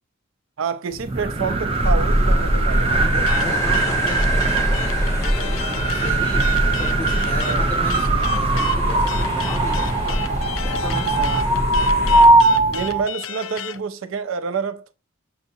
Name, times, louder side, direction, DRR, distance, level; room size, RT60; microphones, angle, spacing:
voice 1, 0.6-3.5 7.4-7.6 11.1-11.4 12.7-14.9, right 5 dB, 85° right, 0.5 m, -28 dB
sound 1, 0.9-13.1, right 2 dB, 30° right, 0.6 m, -21 dB
sound 2, 1.8-12.3, equal, 15° left, 1.1 m, -24 dB
voice 2, 2.7-6.5 6.8-10.2 10.6-11.6, left 2 dB, 30° left, 1.6 m, -34 dB
sound 3, 3.3-13.8, left 10 dB, 85° left, 0.4 m, -33 dB
6.4 x 2.8 x 2.6 m
head